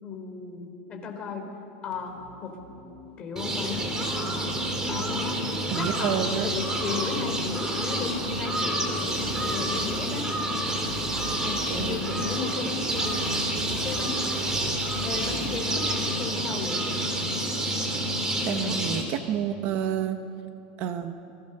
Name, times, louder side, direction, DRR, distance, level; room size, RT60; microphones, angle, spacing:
voice 1, 0.0-1.4 1.8-2.1 2.4-2.5 3.2-3.8 4.8-5.2 5.8-10.2 11.4-13.3 13.8-14.2 15.0-16.8 18.6-18.7, left 5 dB, 20° left, 2 dB, 3.6 m, -35 dB
sound 1, 1.9-16.9, right 4 dB, 65° right, 4.0 m, -44 dB
sound 2, 3.4-19.0, right 1 dB, 15° right, 2.9 m, -28 dB
voice 2, 5.7-6.5 11.7-11.9 18.4-20.2 20.8-21.2, right 9 dB, 40° right, 8 dB, 1.0 m, -29 dB
29.0 x 21.5 x 6.7 m, 2.7 s
supercardioid pair, 165°, 5 cm